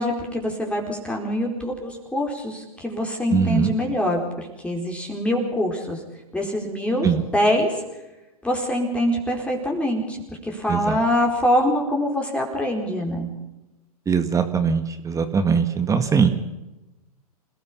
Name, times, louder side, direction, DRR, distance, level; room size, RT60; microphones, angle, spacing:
voice 1, 0.0-6.0 6.3-7.8 8.4-10.2 10.4-13.3, equal, 5° left, 1 dB, 4.5 m, -24 dB
voice 2, 3.3-3.7 7.0-7.2 10.7-10.9 14.1-16.3, right 6 dB, 15° right, 9 dB, 1.8 m, -21 dB
28.0 x 18.0 x 5.6 m, 1.0 s
hypercardioid pair, 110°, 19 cm